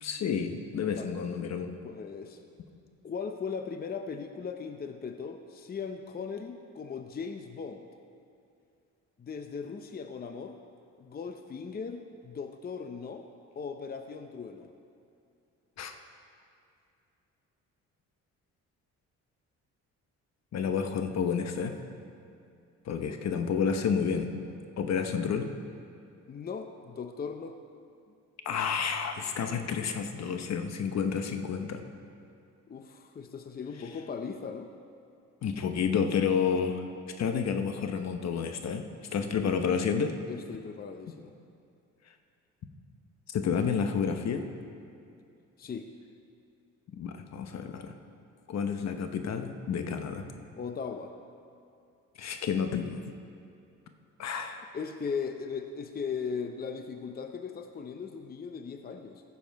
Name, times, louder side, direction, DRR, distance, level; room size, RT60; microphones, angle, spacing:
voice 1, 0.0-1.7 15.8-15.9 20.5-21.8 22.9-24.3 24.8-25.5 28.4-31.8 35.4-36.8 37.2-38.8 39.1-40.2 43.3-44.4 46.9-48.0 48.5-50.2 52.2-53.0 54.2-54.6, left 6 dB, 60° left, 7 dB, 0.9 m, -30 dB
voice 2, 1.8-2.4 3.0-7.9 9.2-10.6 11.0-13.3 13.6-14.7 23.0-23.6 26.3-27.6 32.7-34.7 39.2-39.5 40.3-41.3 45.6-45.9 50.6-51.1 54.7-59.2, left 5 dB, 30° left, 6 dB, 0.6 m, -38 dB
15.0 x 7.0 x 4.6 m, 2.6 s
cardioid pair, 90°, 30 cm